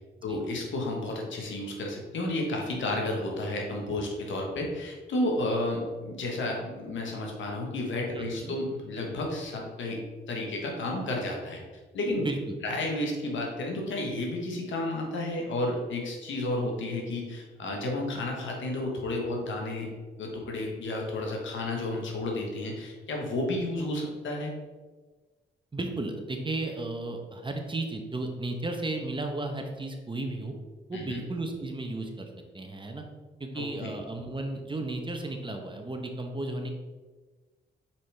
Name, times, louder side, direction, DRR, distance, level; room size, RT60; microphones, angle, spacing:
voice 1, 0.2-11.6 11.9-12.2 12.6-19.9 20.2-24.5 30.9-31.2 33.5-33.9, left 2 dB, 85° left, 0 dB, 1.3 m, -32 dB
voice 2, 8.1-8.6 12.2-12.6 25.7-30.5 30.9-32.3 32.5-33.0 33.4-36.7, right 2 dB, 25° right, 4 dB, 1.0 m, -34 dB
5.6 x 5.0 x 3.4 m, 1.3 s
cardioid pair, 60°, 19 cm